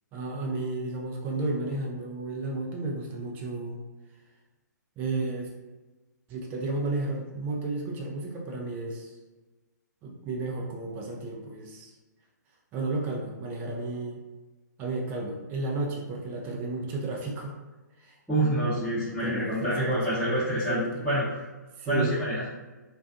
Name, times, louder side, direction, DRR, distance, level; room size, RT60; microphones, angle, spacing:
voice 1, 0.1-3.8 5.0-5.5 6.3-9.1 10.0-11.9 12.7-14.2 14.8-17.5 18.0-18.2 19.1-20.4 20.7-21.1 21.8-22.2, right 2 dB, 20° right, -1 dB, 0.4 m, -32 dB
voice 2, 18.3-21.2 21.9-22.5, right 1 dB, ahead, -17 dB, 0.9 m, -27 dB
2.4 x 2.3 x 2.6 m, 1.2 s
figure-of-eight pair, 130°, 10 cm